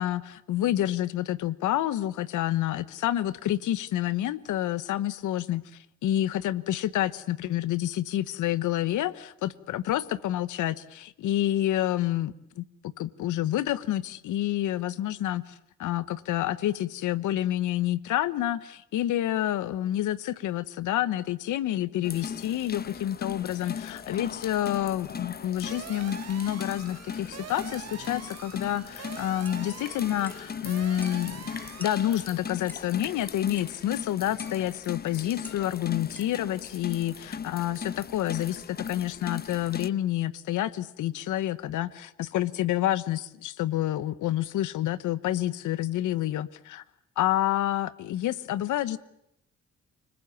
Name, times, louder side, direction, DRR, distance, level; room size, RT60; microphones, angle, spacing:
voice 1, 0.0-5.6 6.0-31.4 31.8-46.8 47.2-49.0, left 13 dB, 80° left, 16 dB, 1.2 m, -28 dB
sound 1, 22.0-39.9, left 6 dB, 30° left, 0.9 m, -38 dB
sound 2, 25.7-32.3, right 10 dB, 55° right, 1.0 m, -44 dB
sound 3, 29.4-30.5 31.0-31.5 31.8-33.0 33.6-34.1 34.4-34.9 35.4-36.4, left 1 dB, 5° left, 1.5 m, -49 dB
30.0 x 20.5 x 7.1 m, 0.78 s
cardioid pair, 90°, 30 cm